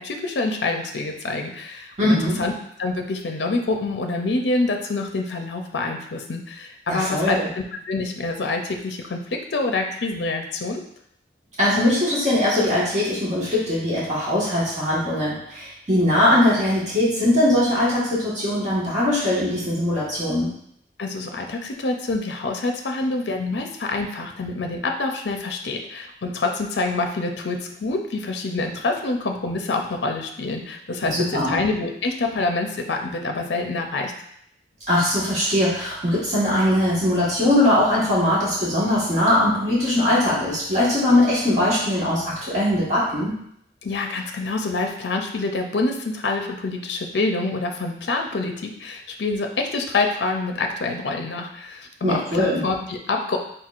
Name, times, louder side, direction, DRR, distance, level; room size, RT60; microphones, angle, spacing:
voice 1, 0.0-2.5 2.8-10.8 21.0-34.1 43.8-53.4, left 3 dB, 70° left, 3 dB, 0.5 m, -26 dB
voice 2, 2.0-2.4 6.9-7.5 11.6-20.5 31.0-31.6 34.9-43.3 52.0-52.6, left 1 dB, 40° right, -8 dB, 1.5 m, -21 dB
4.5 x 3.9 x 2.5 m, 0.70 s
head